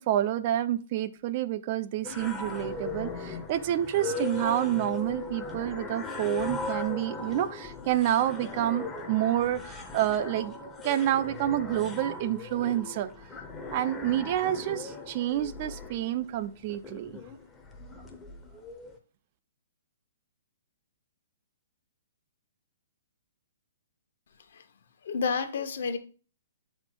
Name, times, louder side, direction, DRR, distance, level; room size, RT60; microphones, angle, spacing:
voice 1, 0.0-10.5 10.8-13.1 13.7-17.2, right 12 dB, 30° right, 0.4 m, -28 dB
sound 1, 2.0-19.0, left 3 dB, 5° left, 0.6 m, -39 dB
voice 2, 25.0-26.0, left 5 dB, 60° left, 1.0 m, -30 dB
6.8 x 4.4 x 4.4 m
hypercardioid pair, 170°, 0 cm